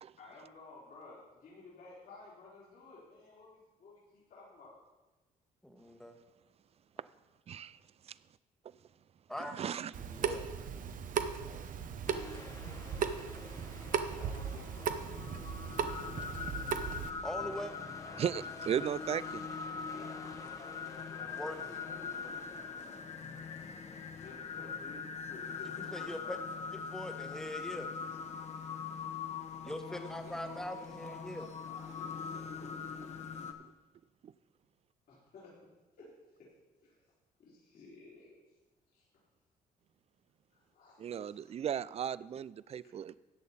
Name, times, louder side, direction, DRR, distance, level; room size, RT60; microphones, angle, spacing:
voice 1, 0.2-4.7 14.1-16.6 18.0-18.2 19.9-23.1 24.1-27.4 29.9-32.8 35.1-35.6 36.0-36.5 36.8-37.0 37.4-38.3 38.9-39.0 40.5-41.4, left 3 dB, 65° left, -7 dB, 3.5 m, -54 dB
voice 2, 5.6-6.1 9.3-10.5 17.2-17.7 21.3-21.8 25.9-26.4 26.7-27.9 29.6-31.4, equal, 5° left, 6 dB, 1.3 m, -42 dB
voice 3, 9.5-9.9 18.2-19.4 41.0-43.2, right 9 dB, 40° right, 19 dB, 0.4 m, -36 dB
Water tap faucet / Sink (filling or washing) / Drip, 9.9-17.1, right 7 dB, 55° right, 0.9 m, -37 dB
sound 1, 12.1-24.3, left 3 dB, 20° left, 1.1 m, -51 dB
sound 2, 14.4-33.5, left 6 dB, 45° left, 1.3 m, -42 dB
13.5 x 8.4 x 4.2 m, 1.1 s
cardioid pair, 90°, 16 cm